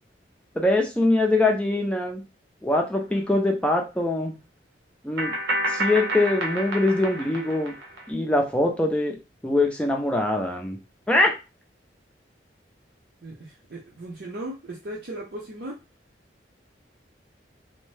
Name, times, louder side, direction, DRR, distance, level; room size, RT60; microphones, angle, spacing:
voice 1, 0.6-2.2 2.6-4.3 5.0-5.3 5.7-7.7 8.1-9.2 9.4-10.8 11.1-11.3, left 2 dB, 5° left, 2 dB, 0.5 m, -23 dB
sound 1, 3.1-3.2 5.2-8.0, right 1 dB, 85° right, 0.8 m, -29 dB
voice 2, 13.2-15.8, right 1 dB, 60° right, -3 dB, 0.6 m, -37 dB
2.7 x 2.1 x 3.2 m, 0.28 s
head